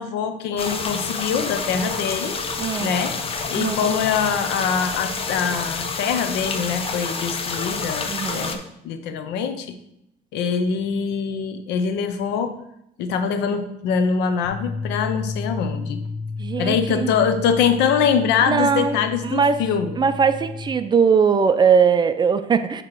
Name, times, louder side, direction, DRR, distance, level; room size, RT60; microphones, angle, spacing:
voice 1, 0.0-2.4 2.8-3.1 3.5-9.7 10.3-12.5 13.0-16.0 16.6-19.9, left 6 dB, 85° left, 9 dB, 0.7 m, -23 dB
sound 1, 0.6-8.6, left 4 dB, 35° left, 0.7 m, -28 dB
voice 2, 2.6-2.9 3.6-3.9 8.1-8.6 16.4-17.1 18.5-19.0 19.2-19.6 20.0-22.8, right 6 dB, 25° right, 11 dB, 0.4 m, -20 dB
sound 2, 14.4-20.7, left 4 dB, ahead, 1.8 m, -32 dB
7.5 x 3.0 x 4.6 m, 0.80 s
cardioid pair, 110°, 17 cm